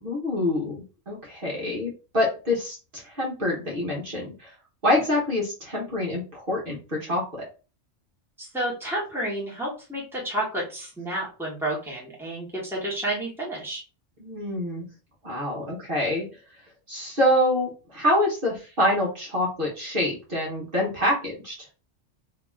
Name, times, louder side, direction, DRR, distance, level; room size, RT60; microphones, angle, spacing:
voice 1, 0.0-4.5 4.8-7.4 14.2-14.8 15.2-16.2 16.9-21.5, left 1 dB, 50° right, -4 dB, 1.3 m, -26 dB
voice 2, 8.4-13.8, right 1 dB, ahead, -4 dB, 1.3 m, -30 dB
2.9 x 2.9 x 3.5 m, 0.34 s
omnidirectional pair, 1.2 m